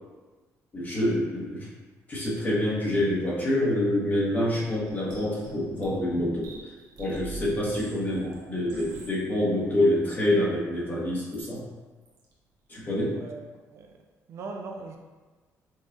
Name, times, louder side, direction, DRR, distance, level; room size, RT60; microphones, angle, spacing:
voice 1, 0.7-1.7 2.1-6.5 7.0-11.7 12.7-13.2, left 1 dB, 30° left, -6 dB, 1.1 m, -26 dB
sound 1, 4.6-9.2 9.8-9.9 11.2-11.5 12.1-12.3, right 2 dB, 85° right, 0.8 m, -43 dB
voice 2, 13.1-14.0 14.3-15.0, right 3 dB, 55° right, 3 dB, 0.4 m, -40 dB
5.3 x 2.3 x 2.6 m, 1.3 s
cardioid pair, 140°, 6 cm